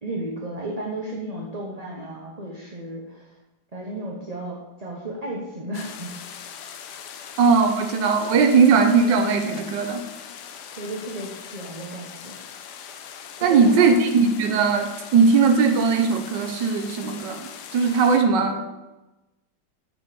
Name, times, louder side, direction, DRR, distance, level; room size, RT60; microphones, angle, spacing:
voice 1, 0.0-3.4 3.7-6.1 10.8-12.4 13.4-13.9, right 1 dB, 25° right, -2 dB, 0.9 m, -33 dB
sound 1, 5.7-18.2, left 8 dB, 65° left, 1.2 m, -41 dB
voice 2, 7.4-10.0 13.4-18.8, right 5 dB, 65° right, 5 dB, 1.5 m, -19 dB
7.1 x 6.2 x 6.8 m, 1.0 s
omnidirectional pair, 2.1 m